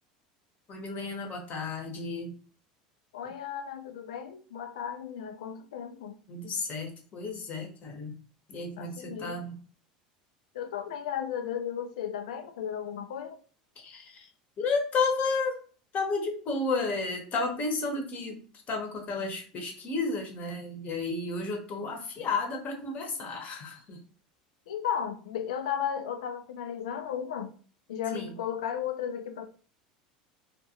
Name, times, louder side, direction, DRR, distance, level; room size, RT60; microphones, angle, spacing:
voice 1, 0.7-2.4 6.3-8.1 8.5-9.6 13.8-14.3 14.6-15.6 15.9-18.4 18.7-24.0 28.1-28.3, left 3 dB, 40° left, 0.9 m, -32 dB
voice 2, 3.1-6.2 8.8-9.4 10.5-13.4 24.7-27.5 27.9-29.5, left 8 dB, 75° left, 0.4 m, -35 dB
2.3 x 2.1 x 2.8 m
hypercardioid pair, 80°, 4 cm